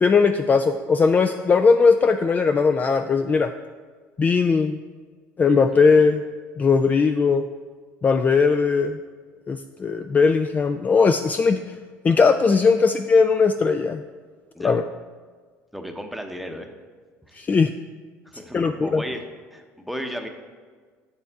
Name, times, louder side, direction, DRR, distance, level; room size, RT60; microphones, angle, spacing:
voice 1, 0.0-3.5 4.2-4.8 5.4-6.2 6.6-7.4 8.0-9.0 9.5-11.6 12.0-14.0 14.6-14.8 17.4-17.7 18.5-19.0, left 5 dB, 25° left, 7 dB, 0.3 m, -19 dB
voice 2, 15.7-16.7 17.3-17.4 18.3-19.2 19.5-20.3, equal, ahead, 4 dB, 0.8 m, -34 dB
7.7 x 7.0 x 3.6 m, 1.5 s
supercardioid pair, 95°, 6 cm